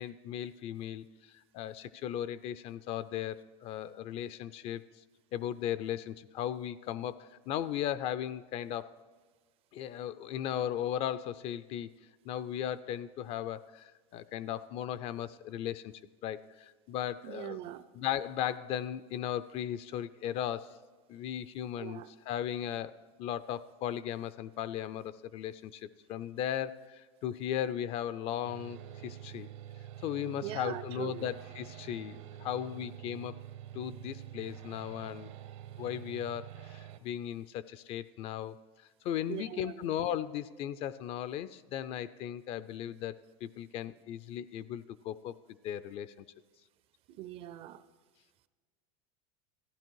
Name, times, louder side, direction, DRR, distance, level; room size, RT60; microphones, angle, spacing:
voice 1, 0.0-4.8 5.3-9.0 9.7-11.9 12.2-15.9 16.2-17.6 17.9-20.8 21.1-22.0 22.3-22.9 23.2-29.5 30.0-33.4 33.7-35.4 35.8-38.6 39.0-43.2 43.4-45.4 45.6-46.1, left 10 dB, 35° left, 16 dB, 0.4 m, -37 dB
voice 2, 17.2-17.8 21.8-22.1 30.4-31.3 39.3-39.9 47.1-47.8, right 13 dB, 35° right, 15 dB, 0.5 m, -41 dB
sound 1, 28.4-37.0, right 12 dB, 70° right, 1.0 m, -47 dB
15.0 x 11.5 x 4.6 m, 1.4 s
supercardioid pair, 150°, 17 cm